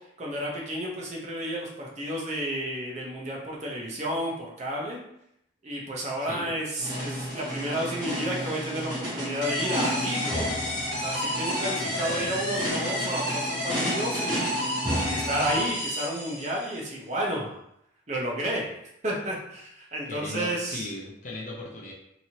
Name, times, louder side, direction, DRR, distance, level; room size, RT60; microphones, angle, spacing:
voice 1, 0.2-5.0 5.6-10.5 10.9-14.6 15.1-17.6 18.1-18.7 19.0-20.9, right 1 dB, 35° right, -2 dB, 0.6 m, -31 dB
voice 2, 6.2-6.6 11.8-12.3 20.1-21.9, left 2 dB, 40° left, -2 dB, 0.5 m, -38 dB
sound 1, 6.8-15.7, equal, 20° right, 1.0 m, -32 dB
sound 2, 9.4-16.8, equal, 65° left, 1.2 m, -31 dB
2.9 x 2.6 x 2.8 m, 0.78 s
head